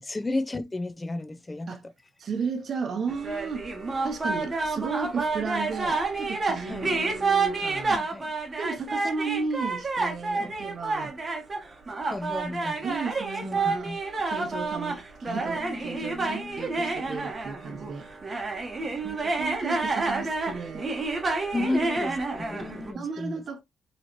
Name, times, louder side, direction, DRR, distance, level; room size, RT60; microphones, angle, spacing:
voice 1, 0.0-1.9 6.7-6.9 7.9-8.3 10.3-10.6 12.1-12.9 13.4-14.0 14.9-15.0 15.3-17.2 18.7-19.0 21.5-23.4, left 2 dB, 20° left, 0.6 m, -34 dB
voice 2, 2.2-3.7 4.0-8.0 8.6-11.2 12.8-13.9 14.3-18.1 19.0-20.9 21.6-21.7 22.9-23.6, right 5 dB, 50° right, 0.8 m, -34 dB
sound 1, 3.1-22.9, right 3 dB, 30° right, 1.1 m, -29 dB
4.0 x 3.0 x 2.9 m
cardioid pair, 90°, 0 cm